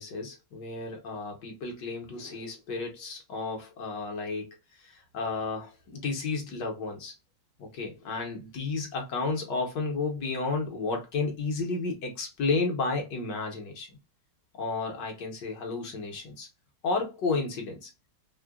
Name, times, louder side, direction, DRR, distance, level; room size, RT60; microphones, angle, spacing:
voice 1, 0.0-4.5 4.8-7.1 7.6-13.9 14.6-16.5 16.8-17.9, left 3 dB, 70° left, 1.6 m, -32 dB
4.7 x 2.2 x 2.3 m
omnidirectional pair, 2.0 m